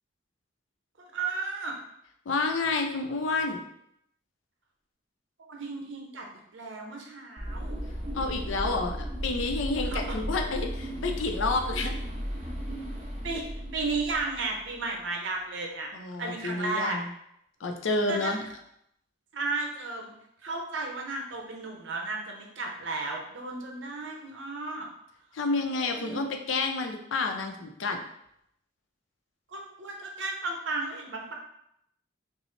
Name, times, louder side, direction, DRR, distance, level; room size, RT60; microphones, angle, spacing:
voice 1, 1.0-1.8 5.4-6.2 6.5-7.8 9.8-10.0 11.8-11.9 13.2-13.4 13.7-15.9 16.2-17.0 18.1-18.3 19.3-20.1 20.4-24.9 25.6-26.2 29.5-31.3, right 3 dB, 80° right, 1 dB, 0.8 m, -34 dB
voice 2, 2.3-3.6 8.1-11.9 15.9-17.1 17.6-18.4 25.3-28.0, left 3 dB, 85° left, 4 dB, 0.5 m, -29 dB
sound 1, 7.4-14.8, equal, 35° right, 0.7 m, -35 dB
5.2 x 2.0 x 3.2 m, 0.76 s
head